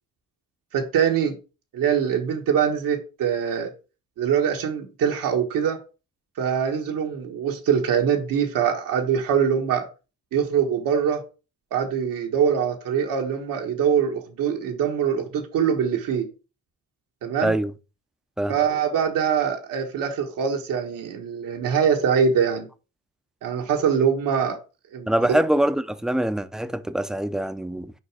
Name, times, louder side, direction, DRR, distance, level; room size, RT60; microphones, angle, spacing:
voice 1, 0.7-1.4 1.7-3.7 4.2-5.8 6.4-9.9 10.3-11.2 11.7-16.3 17.2-17.6 18.5-22.7 23.4-24.6 24.9-25.4, right 7 dB, 90° right, 1.5 m, -23 dB
voice 2, 25.1-27.9, right 1 dB, ahead, 0.4 m, -24 dB
6.4 x 5.0 x 4.8 m
cardioid pair, 125°, 32 cm